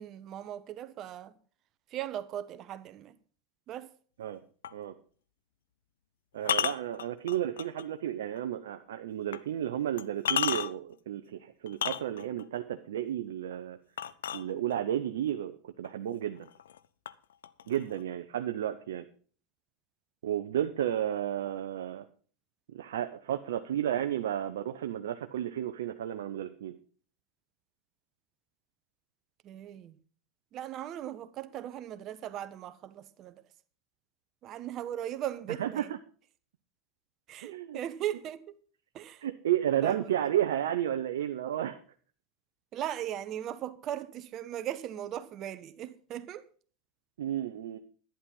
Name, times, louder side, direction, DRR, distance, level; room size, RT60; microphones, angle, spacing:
voice 1, 0.0-1.4 1.9-3.2 3.7-3.9 29.4-30.0 30.5-33.4 34.4-35.9 37.3-38.4 38.9-39.3 39.7-40.1 42.7-46.4, right 11 dB, 45° right, 1.1 m, -38 dB
sound 1, 4.6-4.8 6.4-7.8 8.4-8.5 9.3-9.4 10.0-10.9 11.7-12.4 14.0-14.9 15.8-15.9 16.4-16.8 17.1-18.0, left 9 dB, 85° left, 0.6 m, -32 dB
voice 2, 6.3-13.8 14.3-16.5 17.7-19.1 20.2-22.1 22.7-26.7 35.6-35.8 37.4-37.8 39.2-41.8 47.2-47.8, right 11 dB, 80° right, 0.8 m, -32 dB
11.5 x 10.0 x 5.4 m
hypercardioid pair, 90°, 0 cm